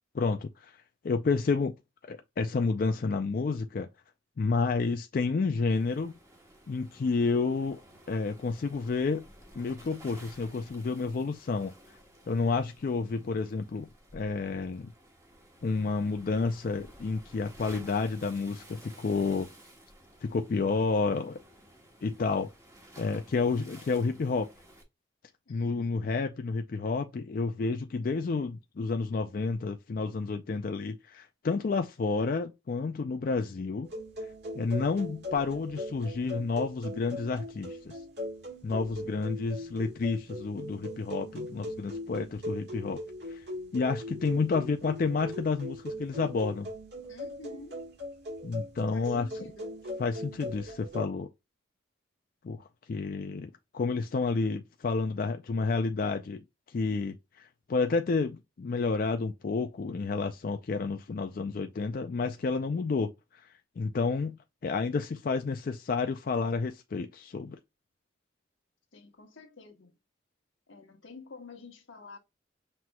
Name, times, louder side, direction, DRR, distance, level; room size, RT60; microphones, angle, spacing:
voice 1, 0.1-0.8 1.0-1.7 2.1-3.9 4.4-6.1 6.7-7.8 8.1-9.2 9.6-11.7 12.3-14.9 15.6-19.5 20.2-21.4 22.0-22.5 23.0-24.5 25.5-33.9 34.6-38.0 38.6-43.0 43.3-43.4 43.7-46.7 48.4-49.3 50.0-51.3 52.4-63.5 63.8-67.6, left 4 dB, 45° left, 0.4 m, -30 dB
Waves surf, 5.7-24.8, right 1 dB, 15° right, 1.0 m, -54 dB
voice 2, 25.5-26.2 47.1-47.9 48.9-49.7 68.9-69.9 70.7-72.2, left 3 dB, 85° left, 1.2 m, -49 dB
sound 1, 33.8-51.1, left 1 dB, 60° right, 1.7 m, -40 dB
5.8 x 3.1 x 2.2 m
head